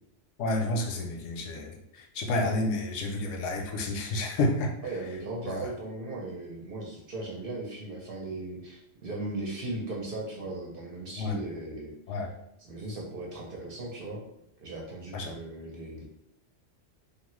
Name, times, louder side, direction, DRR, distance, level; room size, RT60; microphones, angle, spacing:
voice 1, 0.4-4.7 5.4-5.6 11.2-11.4 12.1-12.3 15.1-15.3, left 2 dB, 80° left, 3 dB, 0.9 m, -30 dB
voice 2, 4.8-11.9 12.6-14.2 14.6-16.0, right 2 dB, 55° right, -2 dB, 0.8 m, -37 dB
2.7 x 2.4 x 3.1 m, 0.79 s
omnidirectional pair, 1.3 m